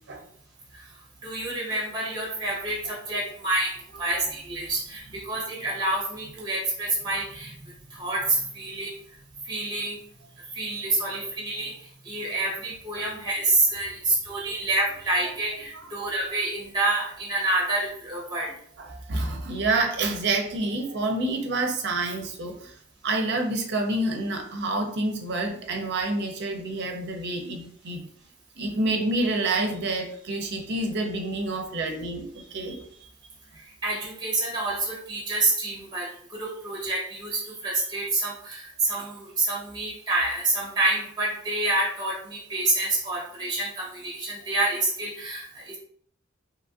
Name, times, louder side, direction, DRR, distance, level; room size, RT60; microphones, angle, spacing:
voice 1, 1.2-7.5 7.9-8.9 9.5-10.0 10.5-11.7 12.0-18.5 33.5-45.8, right 2 dB, 20° right, -4 dB, 0.8 m, -28 dB
voice 2, 18.8-22.7 23.0-28.0 28.6-32.8, right 2 dB, 55° right, 3 dB, 0.5 m, -28 dB
2.9 x 2.5 x 2.5 m, 0.63 s
head